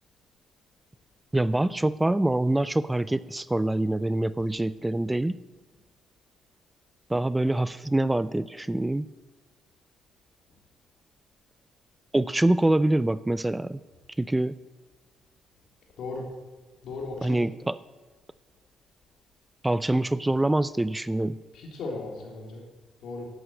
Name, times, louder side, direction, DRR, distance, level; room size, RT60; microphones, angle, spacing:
voice 1, 1.3-5.4 7.1-9.1 12.1-13.8 14.2-14.6 17.2-17.8 19.6-21.4, right 1 dB, 10° right, 17 dB, 0.4 m, -25 dB
voice 2, 16.0-16.3 16.8-17.4 21.5-22.6 23.0-23.3, left 3 dB, 75° left, 0 dB, 3.7 m, -36 dB
11.5 x 11.0 x 8.0 m, 1.2 s
cardioid pair, 90°, 0 cm